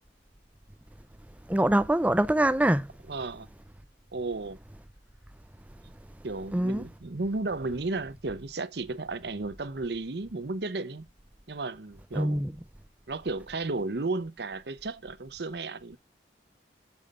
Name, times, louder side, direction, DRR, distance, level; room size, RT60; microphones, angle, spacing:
voice 1, 1.5-2.9 6.5-6.8 12.1-12.5, right 1 dB, 10° right, 0.4 m, -24 dB
voice 2, 3.1-3.5 4.1-4.6 6.2-11.0 11.5-12.5 13.1-16.0, right 3 dB, 65° right, 0.8 m, -33 dB
10.5 x 7.2 x 2.5 m
head